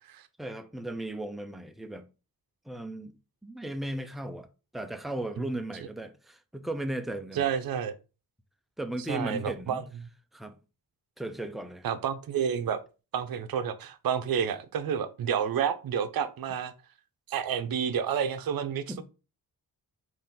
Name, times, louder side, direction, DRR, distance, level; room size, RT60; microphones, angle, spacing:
voice 1, 0.4-2.1 2.7-3.2 3.4-4.5 4.7-7.4 8.8-9.8 10.3-10.5 11.2-11.9 18.9-19.0, right 1 dB, ahead, 0.4 m, -36 dB
voice 2, 7.3-7.9 9.1-9.8 11.8-12.8 13.1-16.7 17.3-19.0, right 8 dB, 65° right, 0.6 m, -30 dB
4.1 x 2.6 x 3.6 m
cardioid pair, 100°, 38 cm